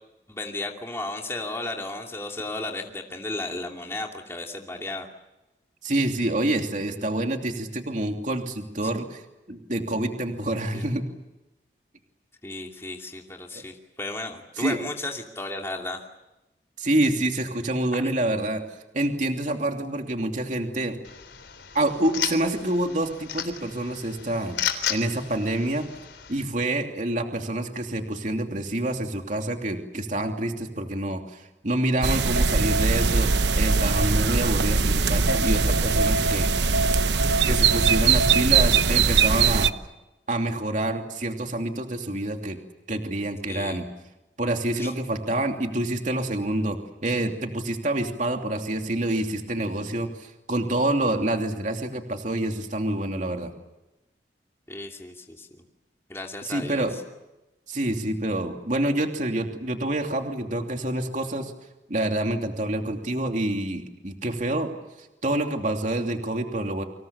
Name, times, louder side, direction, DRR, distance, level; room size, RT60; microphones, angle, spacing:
voice 1, 0.3-5.1 10.7-10.9 12.4-16.0 17.9-18.1 43.5-43.8 44.8-44.9 54.7-55.6 56.1-56.9, left 2 dB, 15° left, 1 dB, 2.7 m, -34 dB
voice 2, 5.8-9.2 9.5-11.0 13.5-13.6 14.6-14.8 16.8-18.6 18.9-21.0 21.7-24.6 24.9-25.9 26.3-36.5 37.4-39.7 40.3-42.6 42.9-43.9 44.4-53.5 56.4-56.9 57.7-61.5 61.9-64.7 65.0-66.8, right 1 dB, 45° right, 4 dB, 2.9 m, -27 dB
sound 1, 21.0-26.4, left 9 dB, 90° left, 3.6 m, -34 dB
sound 2, 32.0-39.7, right 4 dB, 80° right, 1.0 m, -21 dB
29.5 x 26.0 x 7.2 m, 0.97 s
head